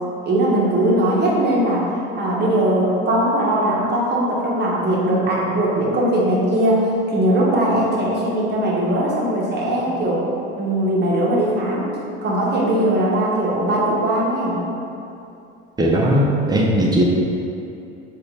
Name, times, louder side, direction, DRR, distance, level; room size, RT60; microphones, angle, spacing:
voice 1, 0.2-1.8 2.1-10.2 10.5-11.9 12.2-14.6, right 1 dB, 35° right, -5 dB, 1.0 m, -20 dB
voice 2, 15.8-17.0, equal, 15° right, -3 dB, 0.6 m, -17 dB
4.0 x 2.4 x 3.4 m, 2.8 s
supercardioid pair, 85°, 30 cm